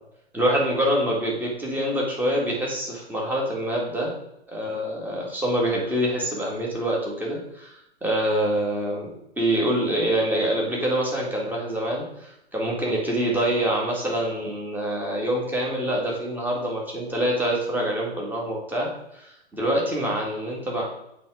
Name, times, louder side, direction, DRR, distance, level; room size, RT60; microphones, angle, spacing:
voice 1, 0.3-4.1 4.5-9.1 9.4-20.8, right 1 dB, 5° right, -3 dB, 2.0 m, -25 dB
8.1 x 3.7 x 4.9 m, 0.82 s
hypercardioid pair, 120°, 32 cm